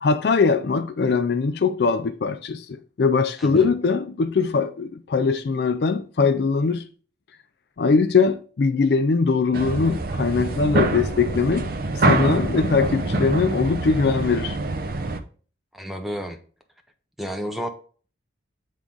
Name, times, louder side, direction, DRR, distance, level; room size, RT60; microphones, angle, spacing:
voice 1, 0.0-6.9 7.8-11.7 12.1-14.6, left 4 dB, 55° left, 0.4 m, -21 dB
sound 1, 9.5-15.2, right 2 dB, 50° right, 0.6 m, -25 dB
voice 2, 15.7-16.4 17.2-17.7, equal, ahead, 0.7 m, -31 dB
7.4 x 3.6 x 3.8 m
head